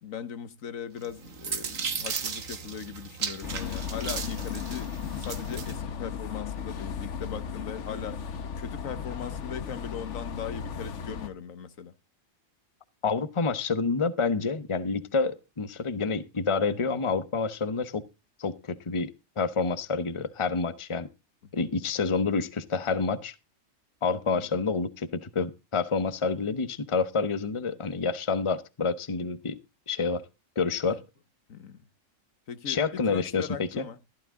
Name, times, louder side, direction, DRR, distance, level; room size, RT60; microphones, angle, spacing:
voice 1, 0.0-8.2 8.6-11.9 21.4-21.7 24.3-24.5 30.9-31.0 31.5-31.8 32.5-34.0, left 7 dB, 80° left, 1.6 m, -39 dB
sound 1, 1.0-5.8, right 6 dB, 80° right, 1.8 m, -35 dB
sound 2, 3.4-11.3, left 7 dB, 65° left, 1.4 m, -36 dB
voice 2, 13.0-18.0 18.4-21.1 21.5-23.3 24.0-29.6 29.9-30.2 30.6-31.0 32.7-33.8, left 4 dB, 25° left, 0.9 m, -28 dB
14.5 x 12.0 x 3.7 m
omnidirectional pair, 1.4 m